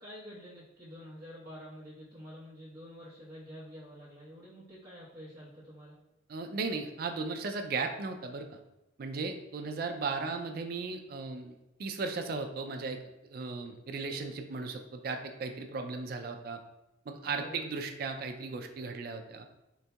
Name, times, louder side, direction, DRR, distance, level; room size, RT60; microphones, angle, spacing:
voice 1, 0.0-6.0 17.1-17.8, equal, 15° right, -12 dB, 0.9 m, -48 dB
voice 2, 6.3-8.6 9.0-16.6 17.1-19.5, right 4 dB, 50° right, 5 dB, 0.3 m, -36 dB
3.9 x 2.6 x 2.2 m, 0.94 s
head